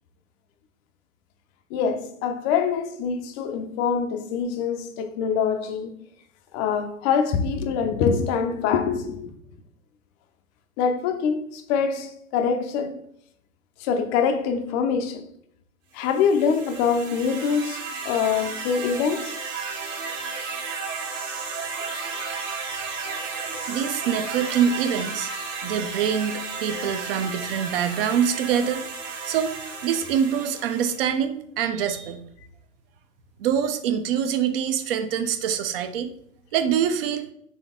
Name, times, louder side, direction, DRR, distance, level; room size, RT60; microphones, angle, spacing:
voice 1, 1.7-5.9 6.5-9.3 10.8-13.1 13.8-15.3 15.9-19.4, left 6 dB, 30° left, 0.5 m, -24 dB
sound 1, 16.0-31.1, right 4 dB, 60° right, 1.3 m, -33 dB
voice 2, 23.7-25.3 25.6-28.8 29.2-32.2 33.4-36.1 36.5-37.2, right 8 dB, 45° right, 0.6 m, -25 dB
4.1 x 3.4 x 3.6 m
hypercardioid pair, 115°, 41 cm